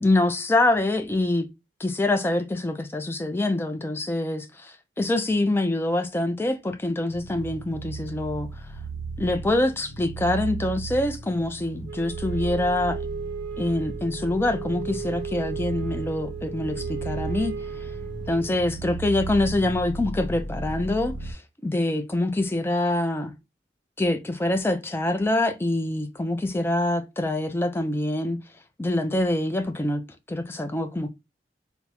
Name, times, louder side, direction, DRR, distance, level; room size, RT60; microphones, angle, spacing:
voice 1, 0.0-1.5 1.8-8.5 9.2-13.0 13.6-17.9 18.3-23.3 24.0-28.4 28.8-30.0 30.3-31.1, left 1 dB, 15° left, 0.3 m, -25 dB
sound 1, 7.1-21.3, right 3 dB, 75° left, 0.6 m, -35 dB
Wind instrument woodwind instrument, 11.9-18.7, right 7 dB, 60° right, 0.4 m, -35 dB
3.4 x 2.0 x 2.8 m
head